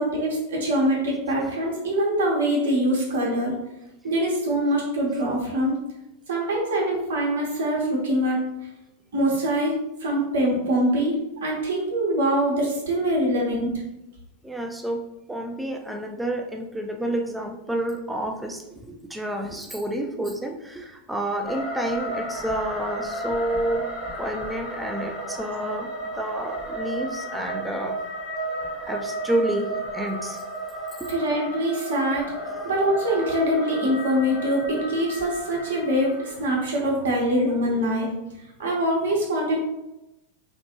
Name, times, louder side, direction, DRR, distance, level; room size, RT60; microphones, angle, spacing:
voice 1, 0.0-3.6 4.0-5.8 6.3-8.4 9.1-11.1 11.4-13.8 31.1-32.3 32.6-38.1 38.6-39.7, equal, 60° right, -2 dB, 0.9 m, -24 dB
voice 2, 14.4-15.0 15.3-23.9 24.2-28.0 28.8-30.4 31.0-31.1, right 1 dB, 5° right, 3 dB, 0.4 m, -29 dB
sound 1, 21.4-37.5, right 1 dB, 30° left, 0.7 m, -33 dB
3.2 x 2.4 x 2.8 m, 0.93 s
figure-of-eight pair, 90°, 0 cm